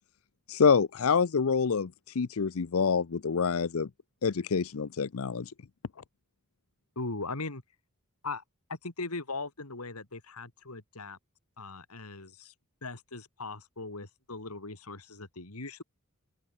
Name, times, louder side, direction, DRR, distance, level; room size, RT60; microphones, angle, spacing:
voice 1, 0.5-3.9 4.2-5.5, left 5 dB, 65° left, 0.6 m, -26 dB
voice 2, 7.0-7.6 8.2-8.4 8.7-11.2 11.6-12.5 12.8-15.8, left 3 dB, 85° left, 3.0 m, -39 dB
open air
head